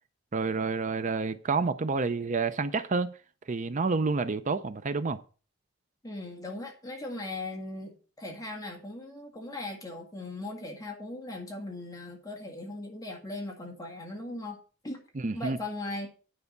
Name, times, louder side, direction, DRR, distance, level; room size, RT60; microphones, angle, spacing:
voice 1, 0.3-3.2 3.5-5.2 15.2-15.6, right 4 dB, 40° right, 0.5 m, -29 dB
voice 2, 6.0-14.6 14.8-15.0 15.3-16.1, left 2 dB, 20° left, 1.7 m, -38 dB
9.5 x 5.6 x 6.6 m
head